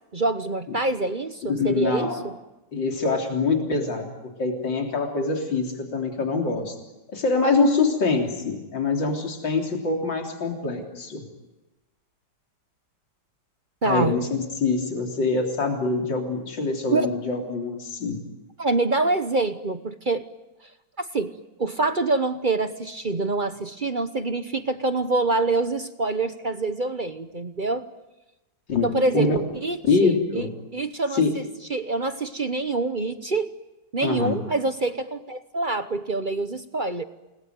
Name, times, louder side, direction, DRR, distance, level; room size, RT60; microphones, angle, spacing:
voice 1, 0.1-2.4 13.8-14.1 16.9-17.1 18.6-20.2 21.0-27.8 28.8-31.4 31.7-33.5 33.9-37.0, right 3 dB, 35° right, 10 dB, 0.8 m, -26 dB
voice 2, 1.5-2.2 2.7-4.1 4.4-6.8 7.1-11.2 13.8-18.2 28.7-28.9 29.1-29.4 29.9-30.5 31.1-31.3 34.0-34.4, left 3 dB, 70° left, 2 dB, 4.2 m, -24 dB
29.0 x 20.5 x 9.4 m, 1.0 s
omnidirectional pair, 2.1 m